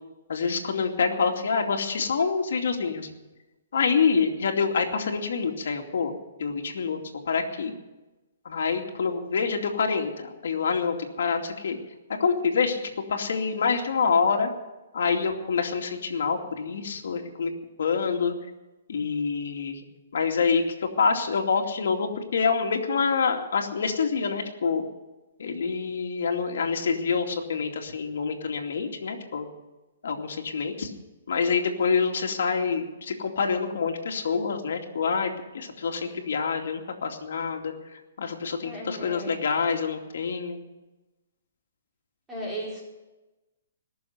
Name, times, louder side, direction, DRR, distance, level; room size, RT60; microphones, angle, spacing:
voice 1, 0.3-3.1 3.7-6.1 6.4-7.0 7.3-7.7 8.4-11.8 12.2-12.8 13.1-14.5 14.9-17.5 17.8-18.3 18.9-19.9 20.1-24.8 25.4-29.5 30.0-30.9 31.3-40.6, left 5 dB, 75° left, 3 dB, 2.5 m, -26 dB
voice 2, 38.6-39.4 42.3-42.8, right 1 dB, 10° right, -5 dB, 4.7 m, -35 dB
21.0 x 7.1 x 9.5 m, 1.1 s
hypercardioid pair, 155°, 0 cm